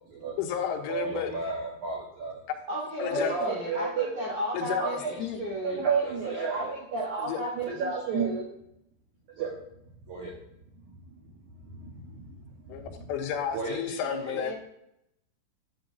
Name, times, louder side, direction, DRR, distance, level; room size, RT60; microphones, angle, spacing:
voice 1, 0.4-1.4 3.0-3.3 4.5-5.4 7.2-7.4 12.7-14.5, left 8 dB, 85° left, 4 dB, 3.5 m, -32 dB
voice 2, 0.9-2.4 3.0-4.1 4.8-5.2 5.6-8.4 9.4-9.6 10.1-10.3 11.6-12.2 13.5-14.0 14.2-14.4, right 4 dB, 90° right, -3 dB, 1.7 m, -31 dB
voice 3, 2.7-5.8 14.0-14.5, equal, 35° right, -5 dB, 4.6 m, -34 dB
11.0 x 7.9 x 2.7 m, 0.77 s
omnidirectional pair, 5.6 m